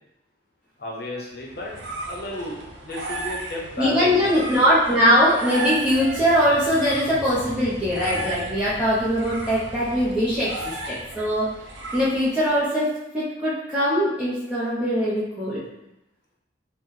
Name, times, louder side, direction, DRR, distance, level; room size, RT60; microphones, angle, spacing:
voice 1, 0.8-4.6, left 1 dB, 55° left, -1 dB, 0.8 m, -34 dB
sound 1, 1.4-12.5, right 2 dB, 70° right, 0.6 m, -35 dB
voice 2, 3.8-10.5 10.8-11.5 11.9-15.6, equal, 5° right, -11 dB, 0.6 m, -21 dB
sound 2, 5.7-12.1, equal, 20° left, 0.8 m, -43 dB
3.9 x 2.2 x 3.2 m, 0.88 s
head